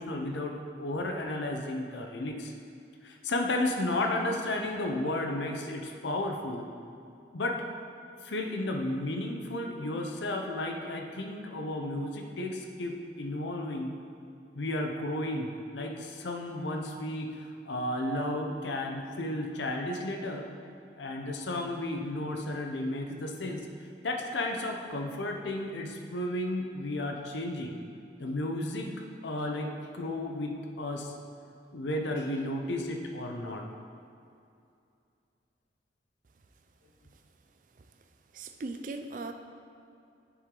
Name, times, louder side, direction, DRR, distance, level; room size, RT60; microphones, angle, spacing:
voice 1, 0.0-2.5 3.0-6.7 7.3-7.6 8.2-13.9 14.5-20.5 21.0-23.6 24.0-27.8 28.2-28.9 29.2-31.1 31.7-33.6, left 1 dB, 80° left, 2 dB, 0.7 m, -33 dB
voice 2, 38.3-39.3, right 3 dB, 45° right, 7 dB, 0.4 m, -38 dB
7.8 x 6.3 x 3.8 m, 2.5 s
head